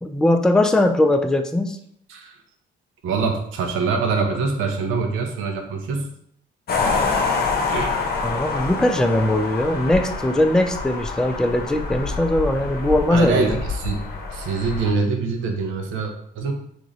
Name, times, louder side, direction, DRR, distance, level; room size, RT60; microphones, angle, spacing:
voice 1, 0.0-1.8 8.2-13.6, left 1 dB, 5° left, 6 dB, 0.3 m, -20 dB
voice 2, 3.0-6.1 7.7-7.9 13.1-14.0 14.3-16.5, right 4 dB, 90° right, 4 dB, 0.7 m, -24 dB
sound 1, 6.7-14.9, left 4 dB, 50° left, 0.8 m, -26 dB
3.1 x 2.6 x 3.8 m, 0.69 s
cardioid pair, 90°, 20 cm